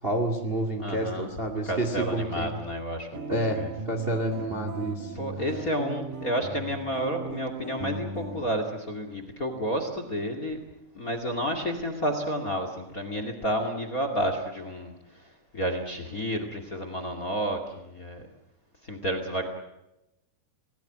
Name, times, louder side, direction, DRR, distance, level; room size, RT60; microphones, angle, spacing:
voice 1, 0.0-2.5 3.3-5.2, right 1 dB, 30° right, 5 dB, 1.0 m, -29 dB
voice 2, 0.8-1.3 1.7-3.2 3.5-3.7 5.1-10.6 10.9-18.3 18.8-19.5, equal, 30° left, 7 dB, 1.7 m, -31 dB
sound 1, 3.1-8.5, right 4 dB, 50° right, 3.2 m, -37 dB
27.5 x 19.0 x 7.6 m, 0.92 s
omnidirectional pair, 5.1 m